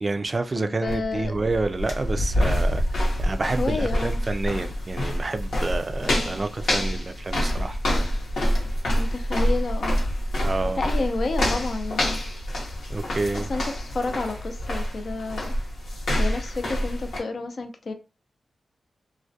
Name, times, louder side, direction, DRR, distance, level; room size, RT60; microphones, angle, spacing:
voice 1, 0.0-2.8 3.2-7.8 10.4-10.8 12.9-13.5, right 3 dB, 40° right, 0.3 m, -28 dB
voice 2, 0.5-1.4 3.6-4.2 8.9-10.0 10.7-12.2 13.3-15.5 16.2-17.9, left 3 dB, 65° left, 0.4 m, -30 dB
sound 1, 0.9-17.2, equal, 90° left, 0.8 m, -26 dB
2.3 x 2.1 x 2.6 m
cardioid pair, 60°, 0 cm